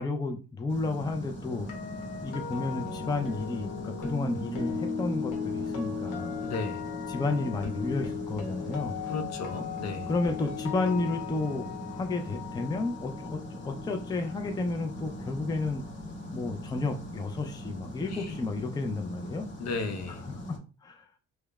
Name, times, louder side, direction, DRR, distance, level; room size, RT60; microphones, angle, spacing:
voice 1, 0.0-1.7 2.2-6.4 7.1-9.0 10.1-15.8 16.3-19.5 20.3-21.1, left 3 dB, 15° left, 0.4 m, -32 dB
sound 1, 0.7-20.6, left 1 dB, 40° left, 0.9 m, -41 dB
sound 2, 1.5-15.5 15.8-16.1, left 5 dB, 90° left, 0.8 m, -37 dB
voice 2, 6.4-6.8 9.0-10.1 18.1-18.4 19.6-20.3, left 3 dB, 60° left, 0.6 m, -35 dB
2.9 x 2.1 x 2.3 m
cardioid pair, 90°, 30 cm